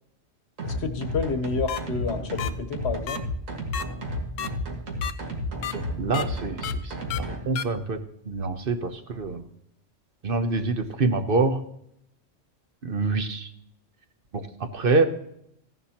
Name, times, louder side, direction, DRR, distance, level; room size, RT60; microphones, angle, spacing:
voice 1, 0.6-3.2, left 4 dB, 55° left, 7 dB, 1.4 m, -29 dB
sound 1, 0.6-7.4, equal, 85° right, 2.1 m, -32 dB
sound 2, 1.7-1.8 2.4-2.5 3.1-3.2 3.7-3.8 4.4-4.5 5.0-5.1 5.6-5.7 6.1-6.2 6.6-6.7 7.1-7.2 7.6-7.7, left 9 dB, 80° left, 1.0 m, -30 dB
voice 2, 5.7-9.5 10.2-11.6 12.8-13.5 14.3-15.0, right 3 dB, 50° right, 8 dB, 1.0 m, -26 dB
15.0 x 11.0 x 2.9 m, 0.73 s
omnidirectional pair, 1.3 m